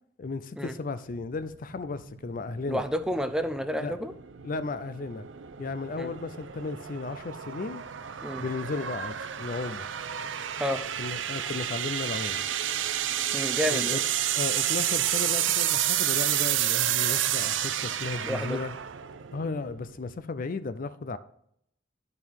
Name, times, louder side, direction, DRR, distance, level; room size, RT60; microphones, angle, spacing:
voice 1, 0.2-2.8 3.8-4.0 4.4-5.3 5.6-7.8 8.4-9.9 11.0-12.4 13.7-14.0 14.3-18.7 19.3-21.2, left 3 dB, 45° left, 13 dB, 0.5 m, -34 dB
sound 1, 1.1-20.2, right 11 dB, 80° right, 0.5 m, -30 dB
voice 2, 2.7-4.1 6.0-6.1 8.2-8.4 10.6-10.8 13.3-14.0 18.2-18.6, equal, 5° right, 9 dB, 0.5 m, -30 dB
11.0 x 5.4 x 4.7 m, 0.71 s
head